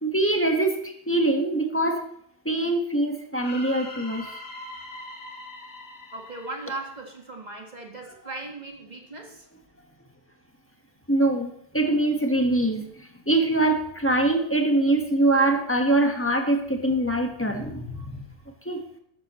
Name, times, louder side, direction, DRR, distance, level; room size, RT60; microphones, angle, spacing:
voice 1, 0.0-2.0 2.4-4.3 11.1-18.1 18.6-18.8, right 2 dB, 10° left, 3 dB, 1.3 m, -23 dB
sound 1, 3.4-7.5, left 2 dB, 35° left, 1.8 m, -41 dB
voice 2, 6.1-9.5, right 2 dB, 35° right, 1 dB, 1.8 m, -38 dB
13.0 x 13.0 x 3.1 m, 0.68 s
omnidirectional pair, 1.3 m